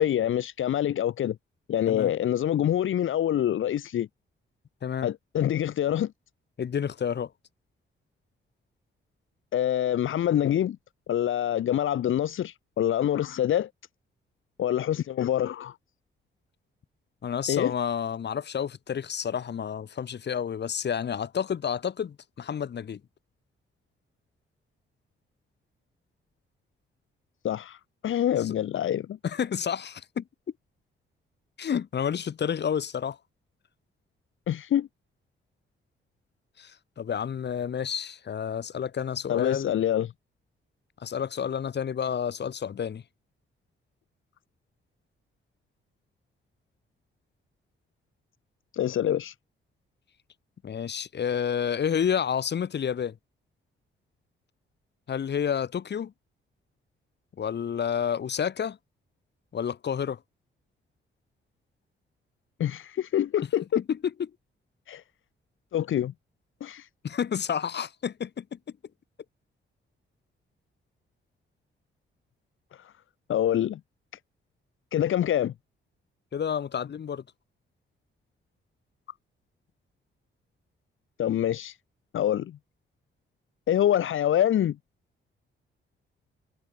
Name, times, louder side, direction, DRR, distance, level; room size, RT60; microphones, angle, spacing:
voice 1, 0.0-1.4 1.7-4.1 5.0-6.1 9.5-10.8 11.1-13.7 14.6-15.8 17.5-17.7 27.4-29.2 34.5-34.9 39.3-40.1 48.7-49.3 62.6-63.8 64.9-65.0 65.7-66.1 66.6-66.9 72.7-72.9 73.3-73.8 74.9-75.5 81.2-81.8 82.1-82.6 83.7-84.8, left 11 dB, 75° left, 1.4 m, -26 dB
voice 2, 6.6-7.3 17.2-23.0 28.4-28.5 29.2-30.2 31.6-33.2 36.6-39.7 41.0-43.0 50.6-53.2 55.1-56.1 57.4-58.8 59.5-60.2 63.8-64.0 67.0-68.6 76.3-77.2, left 8 dB, 55° left, 2.2 m, -30 dB
cardioid pair, 90°, 21 cm